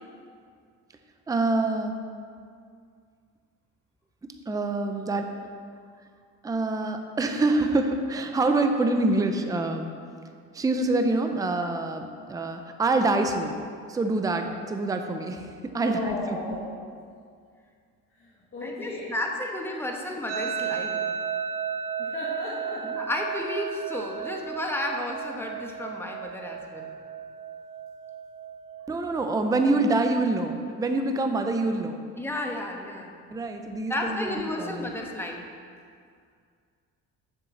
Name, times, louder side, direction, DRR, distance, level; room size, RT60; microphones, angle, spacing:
voice 1, 1.3-2.0 4.2-5.3 6.4-9.9 10.5-13.6 13.9-16.5 28.9-32.0 33.3-34.9, right 2 dB, 10° right, 5 dB, 0.6 m, -26 dB
voice 2, 15.8-16.7 18.2-19.1 22.0-22.8, left 2 dB, 40° left, -7 dB, 1.9 m, -34 dB
voice 3, 18.6-21.1 22.8-26.9 32.2-33.1 33.9-35.4, left 1 dB, 5° left, 1 dB, 1.1 m, -32 dB
sound 1, 20.3-29.3, right 7 dB, 55° right, 1.2 m, -34 dB
7.4 x 6.6 x 7.2 m, 2.2 s
cardioid pair, 135°, 31 cm